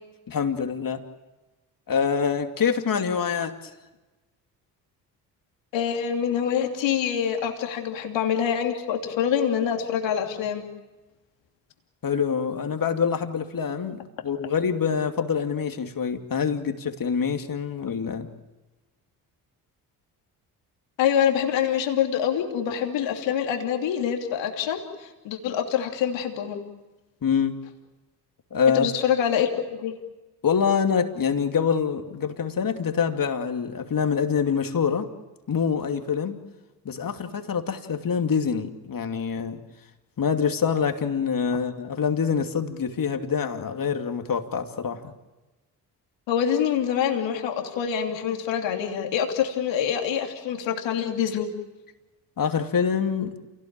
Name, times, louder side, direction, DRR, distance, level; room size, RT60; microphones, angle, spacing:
voice 1, 0.3-1.0 1.9-3.6 12.0-14.0 14.2-18.3 27.2-27.6 28.5-28.9 30.4-35.1 35.5-36.4 36.8-39.6 40.2-45.1 52.4-53.4, left 6 dB, 45° left, 6 dB, 2.7 m, -25 dB
voice 2, 5.7-10.6 21.0-26.6 28.7-29.9 46.3-51.5, left 8 dB, 70° left, 3 dB, 3.0 m, -25 dB
28.0 x 18.0 x 9.0 m, 1.1 s
hypercardioid pair, 50°, 46 cm